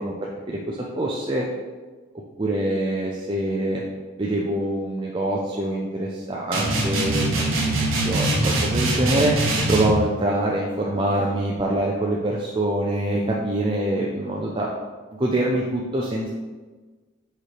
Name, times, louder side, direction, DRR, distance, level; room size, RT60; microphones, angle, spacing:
voice 1, 0.0-1.5 2.4-3.8 4.2-7.7 7.9-9.4 9.7-14.7 15.2-16.3, right 1 dB, 25° right, -3 dB, 0.5 m, -25 dB
sound 1, 6.5-10.0, right 2 dB, 75° right, 1.2 m, -23 dB
4.9 x 4.3 x 4.8 m, 1.3 s
head